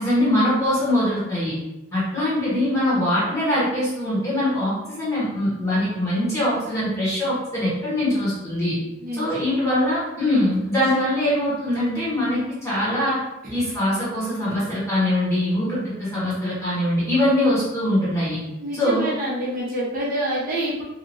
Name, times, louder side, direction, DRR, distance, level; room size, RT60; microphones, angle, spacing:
voice 1, 0.0-1.5 1.9-8.8 9.1-13.2 13.5-18.4 18.7-19.1, left 1 dB, 15° left, -9 dB, 1.1 m, -22 dB
voice 2, 18.6-20.8, right 1 dB, 40° right, -7 dB, 0.8 m, -27 dB
2.8 x 2.5 x 2.6 m, 0.95 s
head